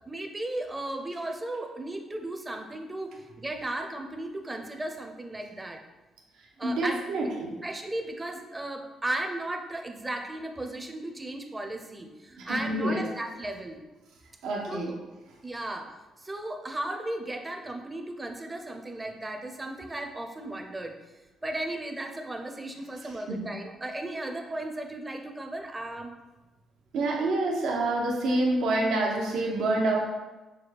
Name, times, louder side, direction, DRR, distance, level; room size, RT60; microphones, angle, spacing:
voice 1, 0.1-5.8 6.6-7.0 7.6-13.8 14.7-14.8 15.4-21.0 21.4-26.1, right 1 dB, 20° right, 4 dB, 0.5 m, -35 dB
voice 2, 6.6-7.6 12.3-13.0 14.4-14.9 23.0-23.4 26.9-29.9, right 2 dB, 85° right, -1 dB, 0.8 m, -27 dB
5.9 x 2.2 x 3.3 m, 1.1 s
cardioid pair, 90°, 0 cm